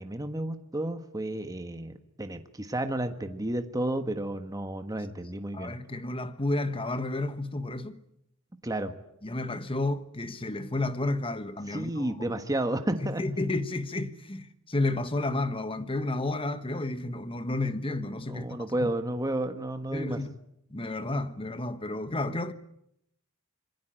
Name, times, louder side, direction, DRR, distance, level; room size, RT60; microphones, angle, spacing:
voice 1, 0.0-5.7 8.6-8.9 11.7-13.2 18.3-20.2, right 1 dB, 15° right, 1.4 m, -32 dB
voice 2, 5.5-8.0 9.2-12.3 13.0-18.5 18.8-18.9 19.9-20.4 20.7-22.5, left 2 dB, 25° left, 1.3 m, -31 dB
26.5 x 22.0 x 9.0 m
head